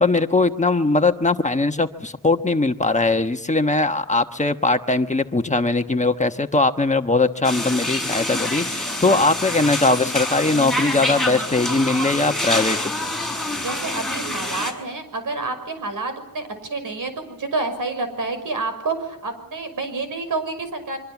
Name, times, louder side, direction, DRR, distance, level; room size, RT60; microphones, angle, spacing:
voice 1, 0.0-12.9, left 3 dB, 20° left, 1.2 m, -20 dB
sound 1, 7.4-14.7, left 1 dB, ahead, 6.4 m, -26 dB
voice 2, 13.6-21.0, right 3 dB, 80° right, 6.2 m, -28 dB
24.5 x 24.0 x 7.2 m
wide cardioid pair, 110°, 32 cm